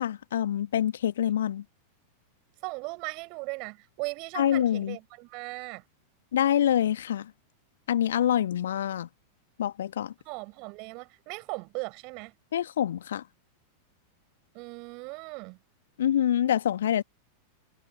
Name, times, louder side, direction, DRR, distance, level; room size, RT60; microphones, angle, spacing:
voice 1, 0.0-1.6 4.4-5.0 6.3-7.3 7.9-9.1 9.6-10.1 12.5-13.2 16.0-17.0, left 10 dB, 60° left, 1.7 m, -26 dB
voice 2, 2.6-5.8 10.2-12.3 14.5-15.6, right 30 dB, 45° right, 5.1 m, -38 dB
figure-of-eight pair, 90°, 0 cm